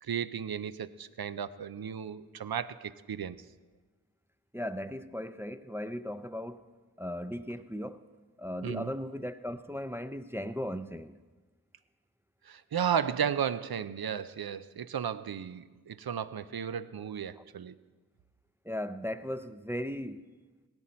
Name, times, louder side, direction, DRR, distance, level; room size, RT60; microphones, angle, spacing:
voice 1, 0.0-3.4 8.6-8.9 12.5-17.7, right 8 dB, 85° right, 0.5 m, -34 dB
voice 2, 4.5-6.6 7.0-8.0 8.4-11.2 17.4-17.5 18.7-20.2, equal, 5° right, 0.4 m, -37 dB
17.5 x 9.0 x 4.3 m
wide cardioid pair, 40°, 36 cm